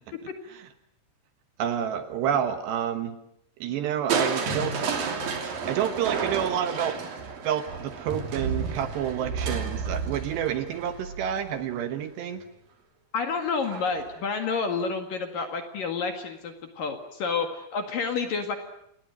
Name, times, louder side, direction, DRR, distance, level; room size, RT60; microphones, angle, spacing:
voice 1, 1.6-3.2 3.6-4.7 5.6-7.0 7.4-12.4, right 9 dB, 70° right, 9 dB, 3.0 m, -29 dB
Crushing, 4.1-12.0 13.6-14.1 14.6-14.7, right 5 dB, 50° right, 4.3 m, -31 dB
voice 2, 13.1-18.6, left 5 dB, 55° left, 6 dB, 2.9 m, -29 dB
28.0 x 20.0 x 9.1 m, 0.75 s
omnidirectional pair, 5.8 m